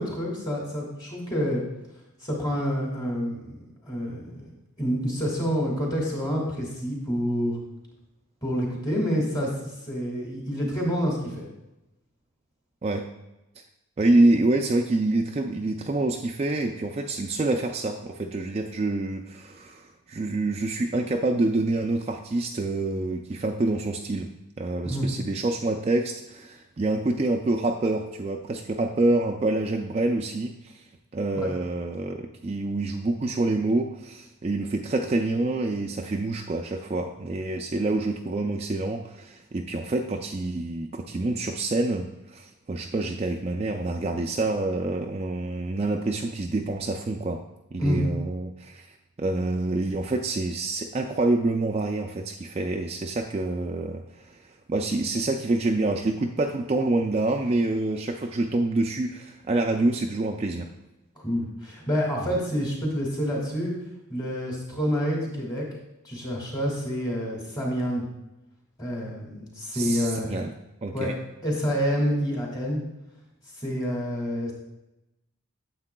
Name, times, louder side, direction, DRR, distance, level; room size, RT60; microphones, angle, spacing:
voice 1, 0.0-1.6 2.2-4.5 4.8-7.6 8.4-11.5 24.8-25.1 31.3-31.5 47.8-48.0 61.2-63.7 64.1-65.7 66.0-68.0 68.8-70.3 70.9-71.1 71.4-72.8 73.6-74.5, equal, 20° left, -2 dB, 1.7 m, -28 dB
voice 2, 14.0-24.3 24.6-30.8 31.1-47.4 47.7-48.9 49.2-60.7 62.2-62.4 69.7-70.5 70.8-71.2, right 2 dB, 30° right, 3 dB, 0.3 m, -27 dB
9.7 x 7.4 x 2.2 m, 0.94 s
head